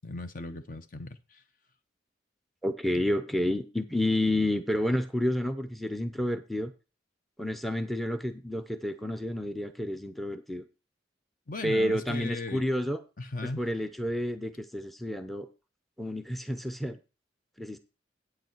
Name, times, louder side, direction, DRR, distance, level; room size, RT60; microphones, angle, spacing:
voice 1, 0.0-1.4 11.5-12.7 13.2-13.6, left 2 dB, 45° left, 0.8 m, -37 dB
voice 2, 2.6-6.7 7.4-10.6 11.6-13.0 13.4-15.5 16.0-17.0 17.6-17.8, left 1 dB, ahead, 0.6 m, -30 dB
8.7 x 8.1 x 4.5 m
head